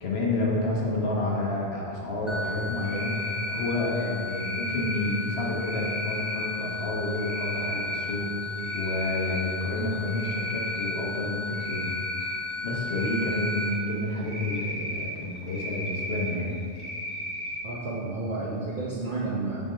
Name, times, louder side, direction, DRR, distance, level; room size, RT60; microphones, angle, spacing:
voice 1, 0.0-11.9 12.3-16.6, left 2 dB, 75° left, -3 dB, 1.4 m, -30 dB
sound 1, 2.3-13.7, left 3 dB, ahead, 0.6 m, -35 dB
Cricket, 2.8-3.7 4.3-5.1 5.6-6.4 7.2-8.0 8.4-9.4 9.8-10.9 11.5-12.3 12.9-13.7 14.2-15.1 15.5-16.3 16.7-17.6, equal, 25° right, 1.3 m, -34 dB
voice 2, 17.6-19.6, right 2 dB, 50° right, -7 dB, 1.0 m, -31 dB
5.9 x 5.3 x 5.1 m, 2.4 s
omnidirectional pair, 1.1 m